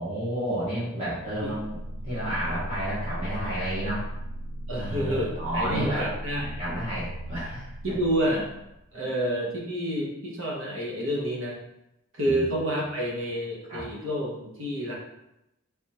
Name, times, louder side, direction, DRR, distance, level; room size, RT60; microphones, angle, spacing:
voice 1, 0.0-1.8 2.0-4.1 4.8-6.1 6.6-7.7 12.2-12.4 13.7-13.8, right 1 dB, 35° right, -12 dB, 1.3 m, -31 dB
sound 1, 1.4-8.9, equal, 40° left, 0.3 m, -37 dB
voice 2, 4.7-6.5 7.8-8.5 8.9-11.6 12.1-14.9, equal, 70° right, -3 dB, 1.0 m, -29 dB
3.4 x 3.3 x 2.9 m, 0.87 s
head